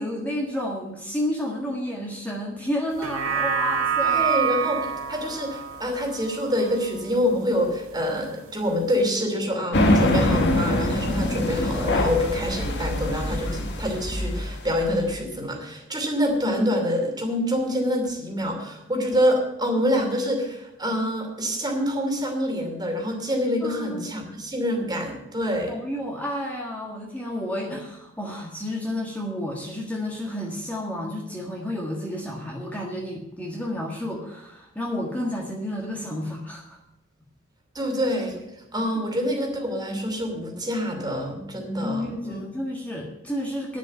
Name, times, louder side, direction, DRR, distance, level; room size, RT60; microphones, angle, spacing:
voice 1, 0.0-4.2 23.6-24.2 25.7-36.8 38.9-39.0 41.8-43.8, left 1 dB, 10° left, -3 dB, 1.6 m, -31 dB
sound 1, 2.9-7.5 7.9-8.0, right 7 dB, 85° right, 1.8 m, -27 dB
voice 2, 4.0-25.8 37.7-38.4 38.7-42.4, equal, 20° right, 2 dB, 2.7 m, -26 dB
sound 2, 9.7-15.1, left 1 dB, 60° left, 1.6 m, -24 dB
10.5 x 7.3 x 9.1 m, 0.89 s
head